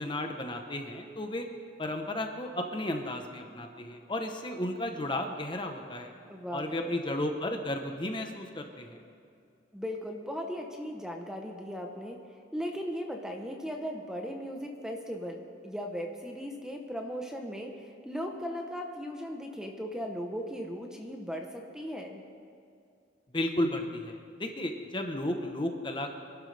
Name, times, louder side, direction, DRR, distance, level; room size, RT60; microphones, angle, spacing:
voice 1, 0.0-1.5 1.8-6.1 6.5-9.0 23.3-26.1, left 1 dB, 25° left, 4 dB, 0.9 m, -33 dB
voice 2, 6.3-7.0 9.7-12.2 12.5-22.2, equal, 5° right, 2 dB, 0.9 m, -37 dB
25.5 x 11.5 x 3.4 m, 2.4 s
head